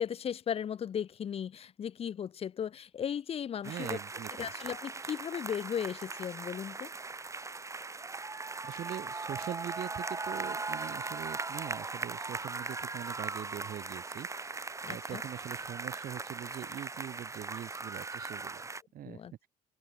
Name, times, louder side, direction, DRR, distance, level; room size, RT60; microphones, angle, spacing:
voice 1, 0.0-3.9 4.4-6.9 14.8-15.2 19.0-19.3, left 8 dB, 35° left, 0.5 m, -36 dB
sound 1, 3.6-18.8, right 3 dB, 20° right, 1.5 m, -39 dB
voice 2, 3.6-4.5 8.6-19.5, right 11 dB, 60° right, 2.4 m, -43 dB
open air
cardioid pair, 110°, 17 cm